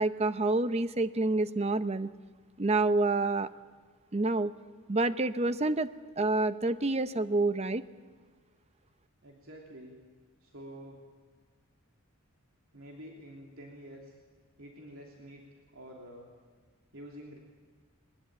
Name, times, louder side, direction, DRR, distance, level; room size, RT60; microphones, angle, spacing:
voice 1, 0.0-2.1 2.6-3.5 4.1-4.5 4.9-5.9 6.2-7.8, right 2 dB, 30° right, 13 dB, 0.7 m, -28 dB
voice 2, 9.2-10.0 10.4-11.0 12.7-14.2 14.6-15.4 15.7-16.3 16.9-17.4, equal, 65° right, -1 dB, 3.1 m, -48 dB
21.0 x 21.0 x 8.9 m, 1.5 s
head